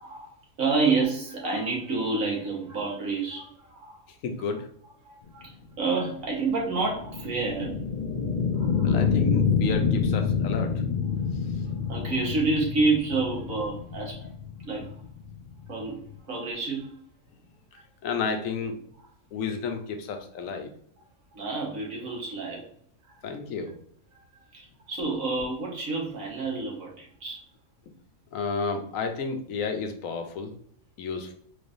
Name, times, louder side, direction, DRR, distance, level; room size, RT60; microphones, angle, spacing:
voice 1, 0.0-4.0 5.0-7.8 8.6-9.0 11.9-14.2 14.6-14.9 15.7-16.0 16.3-16.9 21.3-22.6 24.5-27.4, right 3 dB, 70° right, -2 dB, 1.6 m, -29 dB
voice 2, 4.1-4.7 8.8-10.8 11.3-11.6 14.2-14.3 18.0-18.8 19.3-20.7 23.2-23.8 28.3-30.5 31.0-31.3, left 5 dB, 75° left, 5 dB, 1.1 m, -32 dB
sound 1, 5.5-16.2, left 6 dB, 50° left, 0.6 m, -28 dB
4.0 x 3.3 x 2.6 m, 0.62 s
omnidirectional pair, 1.5 m